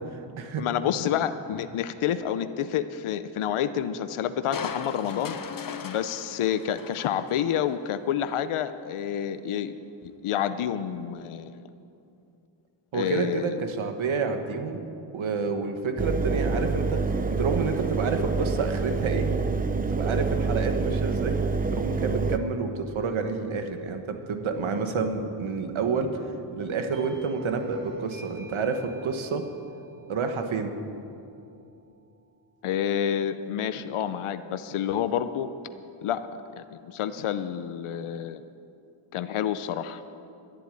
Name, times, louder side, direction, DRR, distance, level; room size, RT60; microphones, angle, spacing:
voice 1, 0.6-5.4 5.8-9.8 10.0-11.6 12.9-13.5 32.6-35.5 36.0-36.2 36.6-38.4 39.1-40.0, left 9 dB, 80° left, 11 dB, 0.8 m, -29 dB
Crushing, 4.5-7.9 8.3-8.4, left 6 dB, 40° left, 0.9 m, -38 dB
voice 2, 12.9-14.8 15.1-19.3 19.7-26.1 26.5-29.4 30.1-30.7, right 4 dB, 70° right, 6 dB, 1.5 m, -29 dB
Engine, 16.0-22.4, right 4 dB, 20° right, 0.6 m, -27 dB
Doorbell, 26.9-32.2, right 3 dB, 40° right, 3.5 m, -52 dB
11.5 x 11.0 x 9.1 m, 2.6 s
cardioid pair, 90°, 49 cm